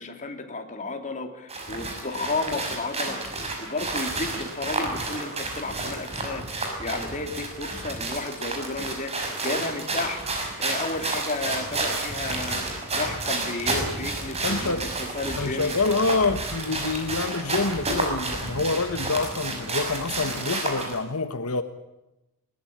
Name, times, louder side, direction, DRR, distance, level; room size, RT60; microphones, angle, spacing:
voice 1, 0.0-10.2 10.6-14.9 15.1-15.7, left 3 dB, 35° left, 3.3 m, -33 dB
sound 1, 1.5-21.0, right 2 dB, 30° right, 6.0 m, -31 dB
voice 2, 14.4-14.8 15.3-21.6, left 3 dB, 80° left, 1.3 m, -26 dB
22.0 x 20.5 x 8.9 m
head